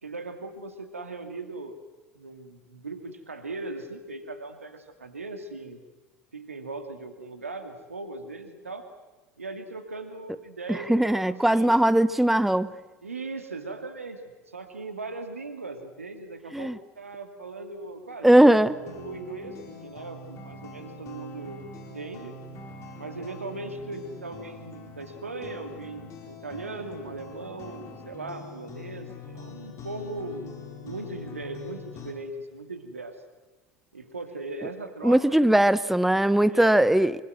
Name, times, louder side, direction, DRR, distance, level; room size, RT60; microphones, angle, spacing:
voice 1, 0.0-1.8 2.1-5.8 6.3-8.9 9.4-11.8 13.0-14.2 14.5-22.3 23.0-30.6 30.8-33.2 33.9-35.6 36.5-36.8, right 3 dB, 90° right, 7 dB, 2.5 m, -39 dB
voice 2, 10.7-12.7 16.5-16.8 18.2-18.8 35.0-37.2, right 1 dB, 5° right, 16 dB, 0.9 m, -20 dB
sound 1, 18.5-32.1, left 3 dB, 45° left, 4.9 m, -43 dB
25.0 x 24.0 x 7.8 m, 1.2 s
figure-of-eight pair, 75°, 7 cm